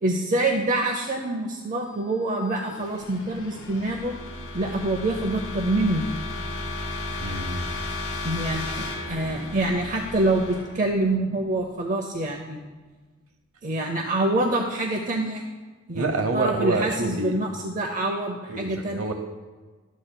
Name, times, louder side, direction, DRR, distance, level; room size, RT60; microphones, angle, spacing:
voice 1, 0.0-4.1 4.5-6.1 8.2-12.6 13.6-15.5 15.9-19.1, right 2 dB, 40° right, 2 dB, 0.6 m, -26 dB
sound 1, 2.1-11.8, left 2 dB, 80° left, 1.8 m, -35 dB
voice 2, 7.2-7.6 15.9-17.3 18.5-19.1, right 3 dB, 75° right, 5 dB, 0.8 m, -27 dB
13.0 x 8.2 x 2.2 m, 1.4 s
head